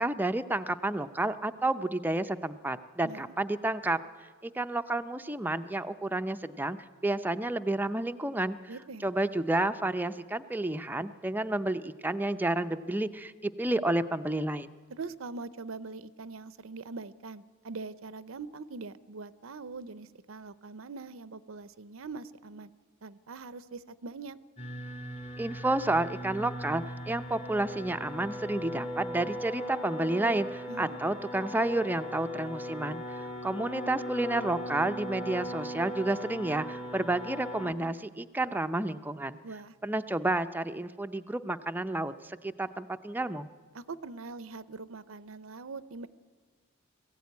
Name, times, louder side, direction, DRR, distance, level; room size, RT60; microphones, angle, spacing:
voice 1, 0.0-4.0 4.4-6.8 7.0-8.6 9.0-14.7 25.4-39.4 39.8-43.5, right 2 dB, 10° right, 9 dB, 0.6 m, -30 dB
voice 2, 8.7-9.1 14.9-22.7 23.0-24.4 30.7-31.0 39.4-39.8 43.7-46.1, right 4 dB, 70° right, 15 dB, 0.7 m, -42 dB
sound 1, 24.6-37.7, equal, 30° left, 1.8 m, -39 dB
20.5 x 15.5 x 9.5 m, 1.5 s
head